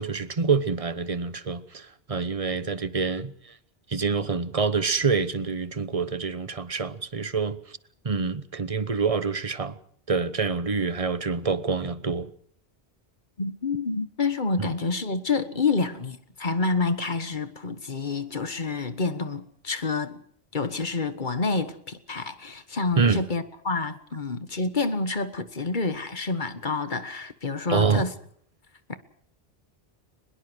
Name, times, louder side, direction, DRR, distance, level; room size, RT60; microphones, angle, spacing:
voice 1, 0.0-3.6 3.9-7.8 8.0-9.8 10.1-12.3 14.6-14.7 23.0-23.2 27.7-28.0, right 5 dB, 35° right, 1.1 m, -26 dB
voice 2, 13.4-20.2 20.5-28.1 28.9-29.0, left 3 dB, 50° left, 1.6 m, -28 dB
23.0 x 21.0 x 6.3 m
omnidirectional pair, 1.0 m